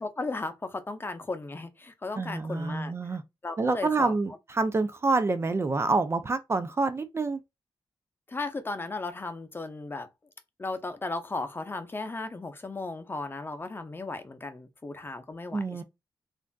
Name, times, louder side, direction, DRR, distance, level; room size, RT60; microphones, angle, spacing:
voice 1, 0.0-2.9 3.4-4.1 8.3-10.1 10.6-15.8, left 3 dB, 25° left, 0.6 m, -35 dB
voice 2, 2.2-3.2 3.6-7.4 15.5-15.8, right 3 dB, 30° right, 0.4 m, -27 dB
3.3 x 2.5 x 2.3 m
cardioid pair, 90°, 9 cm